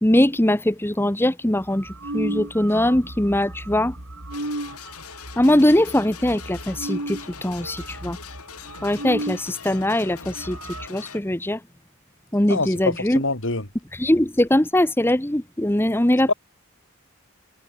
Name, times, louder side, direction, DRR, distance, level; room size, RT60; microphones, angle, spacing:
voice 1, 0.0-3.9 5.4-8.2 8.8-11.6 12.3-13.2 13.9-16.3, left 1 dB, 10° left, 1.0 m, -21 dB
sound 1, 1.6-9.5 9.8-9.9 10.1-10.9, right 1 dB, 65° right, 3.9 m, -35 dB
sound 2, 4.3-11.2, left 6 dB, 80° left, 4.9 m, -42 dB
voice 2, 12.5-13.7 16.3-16.4, left 3 dB, 60° left, 3.3 m, -25 dB
head